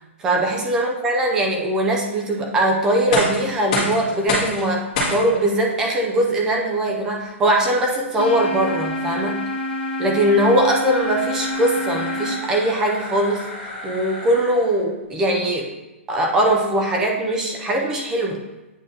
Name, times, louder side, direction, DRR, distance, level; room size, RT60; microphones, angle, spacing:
voice 1, 0.2-4.8 5.1-9.4 10.0-15.7 16.1-18.4, right 1 dB, 10° right, 0 dB, 0.4 m, -21 dB
sound 1, 2.9-14.8, left 2 dB, 25° left, 1.9 m, -31 dB
sound 2, 8.2-12.3, left 2 dB, 50° left, 1.4 m, -27 dB
8.5 x 5.1 x 2.7 m, 1.0 s
hypercardioid pair, 180°, 7 cm